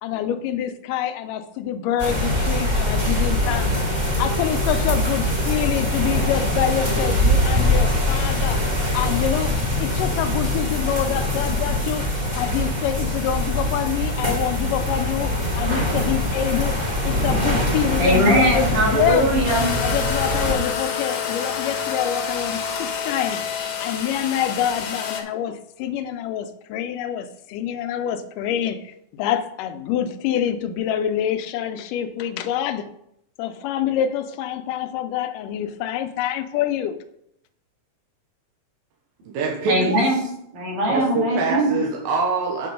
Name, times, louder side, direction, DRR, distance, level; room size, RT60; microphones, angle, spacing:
voice 1, 0.0-3.7 4.2-8.6 8.9-9.5 9.8-12.1 12.4-16.8 17.0-19.3 19.8-23.5 23.8-32.9 33.4-37.0, left 10 dB, 80° left, 10 dB, 2.2 m, -26 dB
sound 1, 2.0-20.5, left 1 dB, 25° right, 1.1 m, -23 dB
voice 2, 17.9-19.7 39.7-40.3 40.5-41.7, right 1 dB, 65° right, -3 dB, 3.9 m, -20 dB
sound 2, 19.5-25.2, left 6 dB, 65° left, 1.7 m, -28 dB
voice 3, 39.2-40.0 40.9-42.7, right 4 dB, 90° right, -1 dB, 2.9 m, -24 dB
8.5 x 5.3 x 5.2 m, 0.75 s
omnidirectional pair, 3.8 m